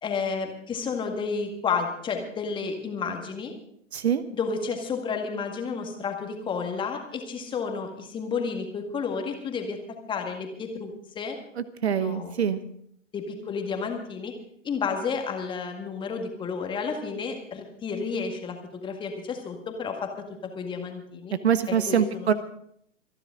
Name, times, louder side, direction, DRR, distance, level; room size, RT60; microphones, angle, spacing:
voice 1, 0.0-3.5 4.4-9.8 10.1-11.4 11.9-12.3 13.1-14.3 14.6-21.3 21.7-22.3, left 5 dB, 10° left, 4 dB, 1.8 m, -31 dB
voice 2, 3.9-4.2 11.6-12.6 21.4-22.3, right 8 dB, 55° right, 13 dB, 1.1 m, -24 dB
25.5 x 11.0 x 3.8 m, 0.67 s
figure-of-eight pair, 125°, 38 cm